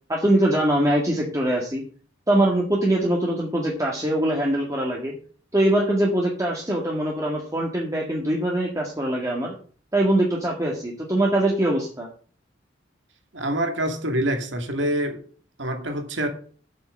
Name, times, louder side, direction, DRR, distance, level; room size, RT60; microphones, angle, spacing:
voice 1, 0.1-1.8 2.3-5.1 5.5-9.5 9.9-12.1, right 1 dB, 20° right, 1.9 m, -22 dB
voice 2, 13.3-15.2 15.6-16.3, right 1 dB, 75° right, 2.3 m, -26 dB
8.0 x 7.0 x 7.7 m
head